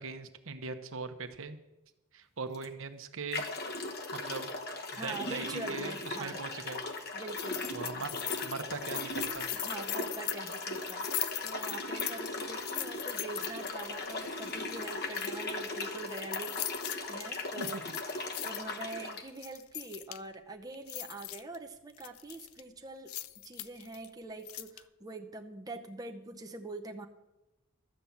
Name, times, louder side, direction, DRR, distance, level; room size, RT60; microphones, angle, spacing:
voice 1, 0.0-1.6 2.1-3.5 4.1-4.5 4.9-6.8 7.7-9.5 17.6-18.0, right 4 dB, 70° right, 7 dB, 1.0 m, -41 dB
sound 1, 2.5-2.7 3.3-19.2, left 2 dB, 50° left, 1.2 m, -38 dB
voice 2, 4.9-6.4 7.1-8.1 9.5-16.6 17.1-23.1 23.4-27.1, right 2 dB, 20° right, 3 dB, 0.7 m, -44 dB
sound 2, 7.4-13.9 14.4-15.4 15.8-17.0 17.5-18.6 19.1-20.3 20.7-21.6 22.0-22.6 23.1-24.1 24.5-24.8, left 16 dB, 80° left, 0.5 m, -40 dB
12.5 x 7.6 x 7.1 m, 1.0 s
head